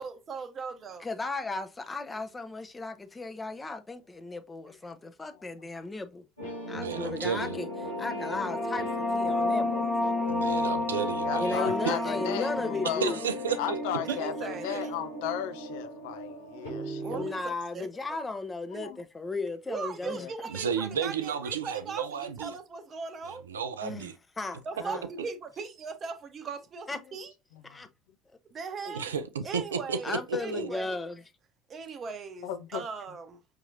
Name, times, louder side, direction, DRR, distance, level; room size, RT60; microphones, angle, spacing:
voice 1, 0.0-1.1 11.6-12.2 14.1-14.8 17.0-17.4 17.7-17.9 19.7-23.4 24.6-27.3 28.5-29.1 29.4-31.0 31.7-33.4, right 5 dB, 35° right, 0.8 m, -39 dB
voice 2, 1.0-6.3 6.7-7.7 8.0-10.2 11.4-13.3 17.1-20.3 23.8-24.1 24.4-25.0 26.9-27.0 27.7-27.9 28.8-29.2 30.0-31.2, left 3 dB, 20° left, 0.8 m, -35 dB
sound 1, 6.4-17.3, equal, 85° left, 2.0 m, -38 dB
voice 3, 6.7-7.6 10.3-11.9 13.0-13.8 14.1-14.2 14.7-14.8 20.5-22.5 23.3-24.1 28.9-30.7, right 6 dB, 75° right, 0.4 m, -33 dB
sound 2, 7.5-14.8, left 2 dB, ahead, 1.2 m, -32 dB
voice 4, 10.9-13.2 13.6-17.2 18.7-19.0 20.0-20.3 20.8-21.0 27.7-27.8 32.4-32.8, left 10 dB, 65° left, 0.5 m, -36 dB
5.7 x 2.9 x 2.6 m
figure-of-eight pair, 60°, 0 cm